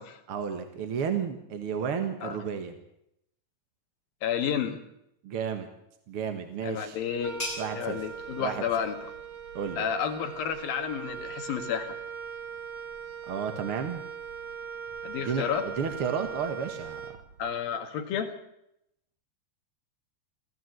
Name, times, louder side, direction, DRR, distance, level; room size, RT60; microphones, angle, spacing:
voice 1, 0.3-2.7 5.2-5.7 6.1-7.0 7.6-8.0 8.4-8.6 9.5-9.8 13.3-14.0 15.2-17.1, right 7 dB, 55° right, 7 dB, 1.6 m, -32 dB
voice 2, 4.2-4.8 6.6-7.4 7.7-9.1 9.8-12.0 15.0-15.7 17.4-18.4, left 8 dB, 65° left, 6 dB, 3.4 m, -31 dB
sound 1, 6.1-11.5, left 1 dB, 20° left, 8.3 m, -44 dB
Wind instrument woodwind instrument, 7.2-17.6, right 7 dB, 75° right, 1.0 m, -40 dB
26.0 x 14.5 x 8.0 m, 0.82 s
omnidirectional pair, 4.6 m